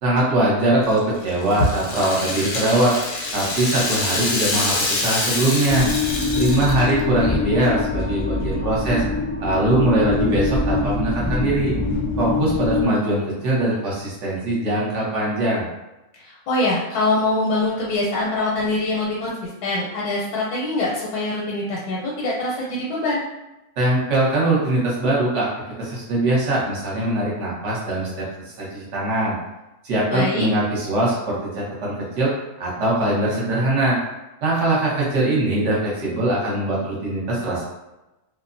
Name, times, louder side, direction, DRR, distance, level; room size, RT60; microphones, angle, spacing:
voice 1, 0.0-2.9 3.3-5.9 6.4-9.0 9.4-11.7 12.2-15.7 23.8-25.5 25.8-28.2 28.6-29.4 29.8-34.0 34.4-37.7, right 1 dB, 55° right, -5 dB, 1.0 m, -21 dB
Rattle (instrument), 0.8-7.0, left 2 dB, 65° left, 0.7 m, -26 dB
sound 1, 5.7-12.9, left 3 dB, 5° left, 0.5 m, -24 dB
voice 2, 16.2-19.3 19.6-23.2 30.1-30.5, left 2 dB, 85° left, -5 dB, 1.1 m, -23 dB
2.6 x 2.0 x 2.5 m, 0.97 s
omnidirectional pair, 1.6 m